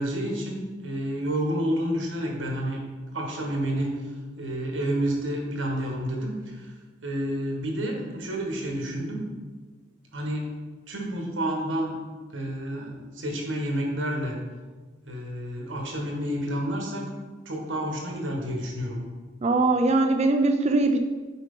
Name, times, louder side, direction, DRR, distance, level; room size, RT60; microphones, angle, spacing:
voice 1, 0.0-2.8 3.1-4.1 4.4-6.7 7.0-9.2 10.1-10.5 10.9-11.9 12.3-14.4 15.0-17.0 17.4-19.0, right 1 dB, 75° right, 0 dB, 1.5 m, -29 dB
voice 2, 19.4-21.0, right 2 dB, 35° right, 5 dB, 0.4 m, -21 dB
7.3 x 4.8 x 3.7 m, 1.3 s
head